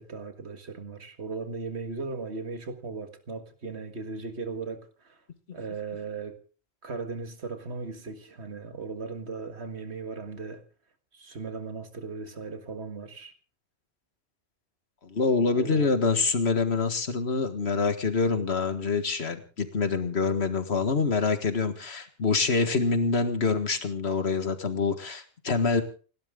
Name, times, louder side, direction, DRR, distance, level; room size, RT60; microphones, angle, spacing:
voice 1, 0.0-5.2 5.5-6.4 6.8-10.6 11.1-13.3 15.6-15.9, right 4 dB, 85° right, 2.1 m, -37 dB
voice 2, 15.0-25.8, left 4 dB, 80° left, 1.9 m, -26 dB
29.0 x 12.0 x 3.7 m
omnidirectional pair, 1.1 m